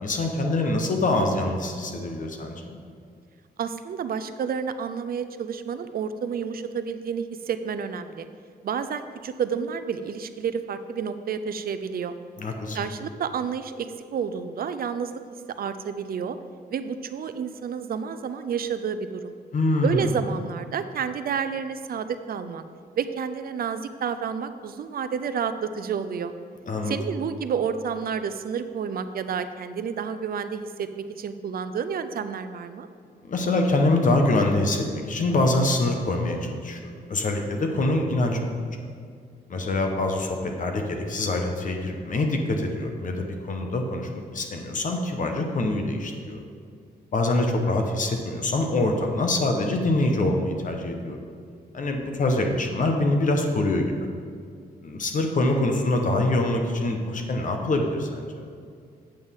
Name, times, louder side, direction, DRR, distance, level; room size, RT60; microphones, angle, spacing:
voice 1, 0.0-2.8 12.4-12.8 19.5-20.1 26.7-27.0 33.3-38.5 39.5-46.4 47.1-51.2 51.7-53.8 54.8-58.5, left 2 dB, 50° left, 3 dB, 1.1 m, -25 dB
voice 2, 3.6-8.3 8.6-12.1 12.7-15.2 15.6-16.4 16.7-19.3 19.8-22.6 23.0-26.3 26.9-32.9, right 6 dB, 60° right, 10 dB, 0.5 m, -30 dB
8.9 x 7.8 x 3.7 m, 2.3 s
cardioid pair, 110°, 17 cm